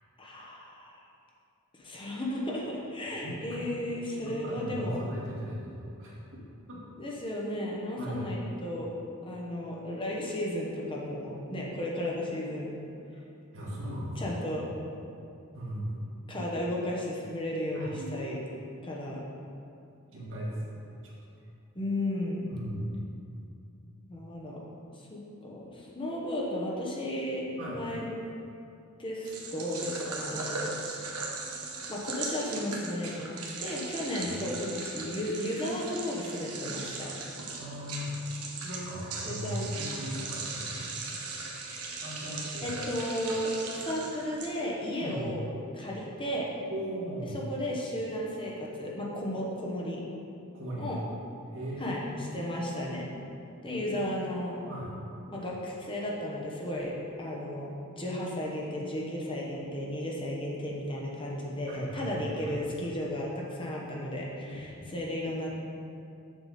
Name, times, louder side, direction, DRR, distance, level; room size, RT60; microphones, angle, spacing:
voice 1, 0.2-1.0 1.8-5.0 7.0-8.9 9.2-12.7 14.2-14.7 16.3-18.4 18.8-19.2 21.7-22.5 24.0-24.6 25.0-28.1 29.0-31.0 31.9-37.1 39.2-39.7 42.6-45.4 45.7-46.5 47.3-50.0 50.8-51.0 51.8-52.0 52.3-53.0 53.6-54.6 55.3-64.7 64.9-65.5, left 1 dB, 25° left, -3 dB, 1.0 m, -34 dB
voice 2, 4.2-6.4 6.7-6.8 8.0-8.3 13.5-14.2 15.5-16.1 17.7-18.2 20.1-21.1 22.4-22.9 27.6-27.8 34.2-34.3 37.6-38.1 38.4-39.5 39.8-40.9 42.0-42.7 45.0-45.2 46.7-47.4 50.5-50.9 51.5-52.5 53.7-54.1 54.7-54.9 61.7-62.1 62.4-62.5 64.8-64.9, equal, 60° right, -6 dB, 1.9 m, -38 dB
sound 1, 29.3-44.9, right 3 dB, 90° right, 1.2 m, -38 dB
7.2 x 6.8 x 4.2 m, 2.6 s
head